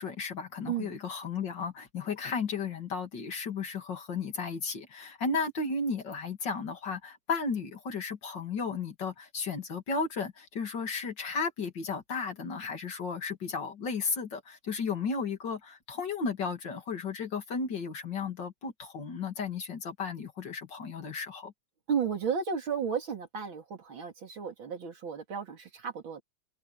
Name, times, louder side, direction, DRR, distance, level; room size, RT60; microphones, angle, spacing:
voice 1, 0.0-21.5, left 4 dB, 65° left, 3.2 m, -34 dB
voice 2, 0.7-1.0 21.9-26.2, right 7 dB, 85° right, 3.4 m, -33 dB
omnidirectional pair, 2.1 m